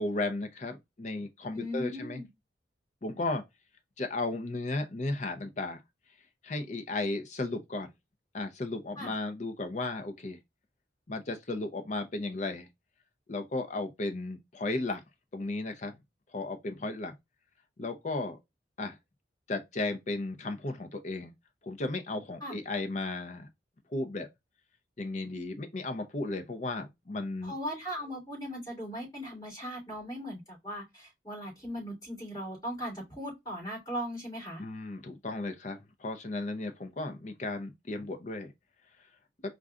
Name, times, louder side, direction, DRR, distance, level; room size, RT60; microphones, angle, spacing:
voice 1, 0.0-2.2 3.0-3.4 4.0-5.8 6.4-7.9 8.3-10.4 11.1-12.7 13.3-15.0 15.3-15.9 16.3-17.2 17.8-18.4 18.8-19.0 19.5-21.3 21.6-23.5 23.9-24.3 25.0-27.5 34.6-38.5, left 2 dB, 40° left, 0.7 m, -34 dB
voice 2, 1.5-2.3 9.0-9.1 22.4-22.6 27.4-34.6, equal, 20° left, 3.2 m, -38 dB
4.5 x 2.5 x 3.6 m
head